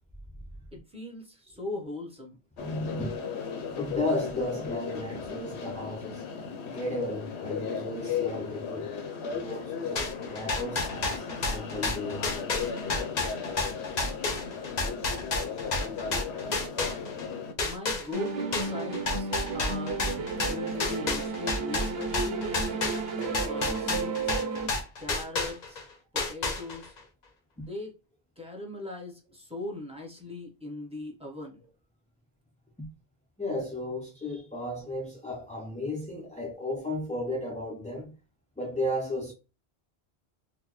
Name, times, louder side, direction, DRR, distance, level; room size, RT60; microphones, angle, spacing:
voice 1, 0.7-2.4 17.6-20.1 20.4-22.8 23.5-24.4 25.0-25.8 26.1-26.9 27.6-27.9 28.4-31.6, left 2 dB, 5° right, 0.9 m, -39 dB
sound 1, 2.6-17.5, left 6 dB, 90° left, 0.9 m, -36 dB
voice 2, 2.6-3.2 3.7-6.2 6.6-8.9 9.4-12.3 32.8-32.9 33.4-38.1 38.6-39.3, left 1 dB, 10° left, 0.4 m, -34 dB
sound 2, 10.0-17.3 17.6-25.8 26.2-27.0, left 3 dB, 50° left, 0.7 m, -30 dB
sound 3, 18.1-24.7, right 4 dB, 70° right, 0.9 m, -33 dB
3.8 x 2.2 x 3.0 m
omnidirectional pair, 1.1 m